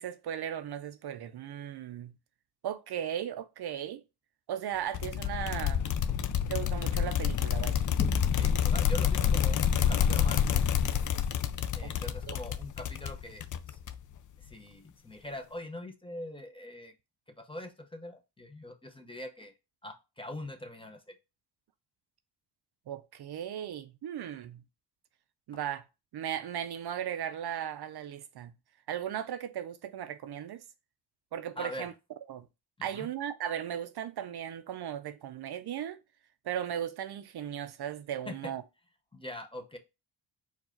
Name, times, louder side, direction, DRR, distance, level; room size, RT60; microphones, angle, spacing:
voice 1, 0.0-2.1 2.6-4.0 4.5-5.8 6.5-7.9 11.8-11.9 12.2-12.4 22.9-24.6 25.5-25.9 26.1-28.5 28.9-30.6 31.3-31.9 32.3-32.5 32.8-36.0 36.4-38.6, right 10 dB, 65° right, 0.5 m, -37 dB
sound 1, 4.9-14.2, left 8 dB, 45° left, 0.4 m, -28 dB
sound 2, 8.0-12.0, left 3 dB, 30° left, 1.2 m, -41 dB
voice 2, 8.4-10.6 11.7-13.8 14.4-16.9 17.4-19.5 19.8-21.0 31.6-31.9 32.8-33.1 38.3-38.5 39.1-39.8, left 1 dB, 10° left, 0.7 m, -43 dB
4.5 x 2.4 x 4.3 m
cardioid pair, 90°, 43 cm